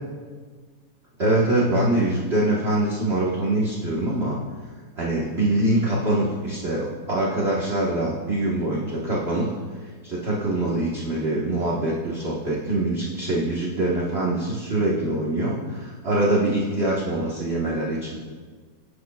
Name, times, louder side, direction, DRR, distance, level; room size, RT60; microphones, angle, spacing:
voice 1, 1.2-4.4 5.0-9.5 9.8-18.2, right 1 dB, 35° right, -5 dB, 1.6 m, -24 dB
21.0 x 11.0 x 2.4 m, 1.5 s
omnidirectional pair, 2.1 m